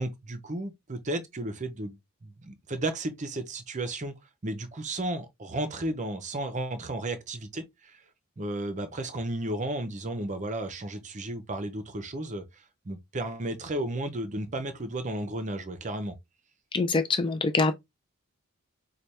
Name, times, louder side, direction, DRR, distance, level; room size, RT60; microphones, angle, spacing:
voice 1, 0.0-4.1 4.4-8.0 8.4-16.1, right 1 dB, 35° right, 0.6 m, -33 dB
voice 2, 16.7-17.7, left 3 dB, 20° left, 0.4 m, -25 dB
3.3 x 2.2 x 4.2 m
head